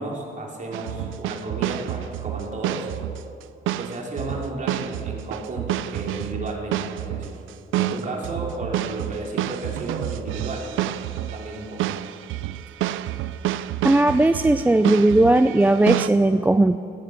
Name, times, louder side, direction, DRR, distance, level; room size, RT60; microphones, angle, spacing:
voice 1, 0.0-2.9 3.7-7.4 7.7-12.0, right 2 dB, 40° right, 0 dB, 2.8 m, -33 dB
sound 1, 0.7-16.1, right 13 dB, 85° right, 0.4 m, -29 dB
voice 2, 13.8-16.8, right 2 dB, 10° right, 11 dB, 0.3 m, -17 dB
17.0 x 9.3 x 5.7 m, 2.8 s
cardioid pair, 90°, 20 cm